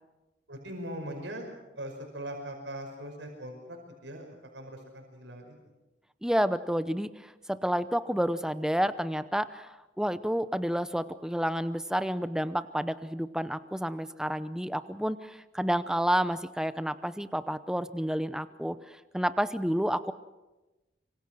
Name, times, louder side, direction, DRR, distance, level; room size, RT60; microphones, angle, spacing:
voice 1, 0.5-1.5 1.8-5.6, right 1 dB, 80° right, 3 dB, 5.5 m, -41 dB
voice 2, 6.2-20.1, equal, 5° right, 12 dB, 0.7 m, -30 dB
26.0 x 25.0 x 6.3 m, 1.1 s
head